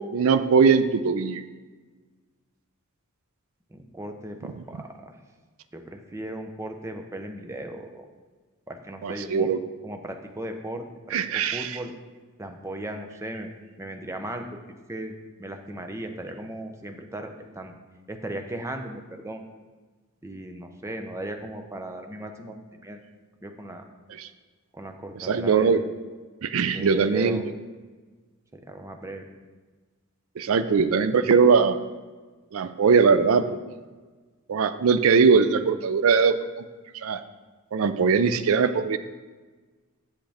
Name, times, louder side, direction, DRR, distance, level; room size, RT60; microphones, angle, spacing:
voice 1, 0.1-1.4 9.0-9.6 11.1-11.8 24.2-24.3 25.2-25.8 26.4-27.4 30.4-31.8 32.5-33.6 34.5-36.6 36.9-37.2 37.7-39.0, right 5 dB, 65° right, 11 dB, 0.4 m, -21 dB
voice 2, 3.7-5.2 5.7-8.1 8.7-9.5 9.8-11.2 11.5-11.9 12.4-13.5 13.8-14.6 14.9-15.1 15.4-17.7 18.1-19.4 20.2-23.0 23.4-23.8 24.7-25.7 26.7-27.4 28.5-29.2, right 1 dB, 15° right, 5 dB, 0.6 m, -37 dB
7.7 x 7.2 x 3.4 m, 1.4 s
head